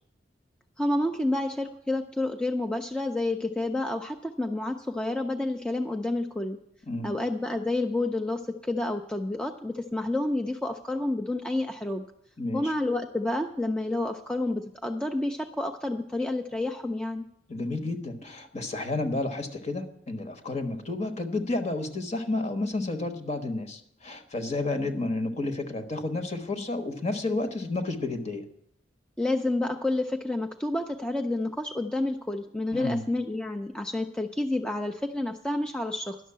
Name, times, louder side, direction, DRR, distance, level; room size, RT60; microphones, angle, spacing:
voice 1, 0.8-6.6 7.0-12.1 12.5-17.2 29.2-36.2, left 2 dB, 5° left, 4 dB, 0.5 m, -29 dB
voice 2, 12.4-12.7 17.5-28.5 32.7-33.0, left 2 dB, 40° left, 7 dB, 1.2 m, -31 dB
11.0 x 6.4 x 8.7 m, 0.73 s
head